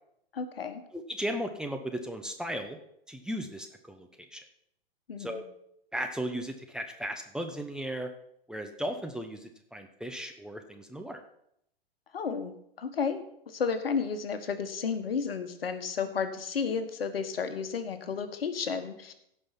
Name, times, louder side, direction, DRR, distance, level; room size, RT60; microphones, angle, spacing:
voice 1, 0.3-0.8 5.1-5.4 12.1-19.1, left 6 dB, 70° left, 9 dB, 1.5 m, -32 dB
voice 2, 0.9-2.8 3.1-4.4 5.2-5.4 5.9-8.1 8.5-11.2, equal, ahead, 5 dB, 0.8 m, -36 dB
16.5 x 5.6 x 5.8 m, 0.75 s
figure-of-eight pair, 110°, 30 cm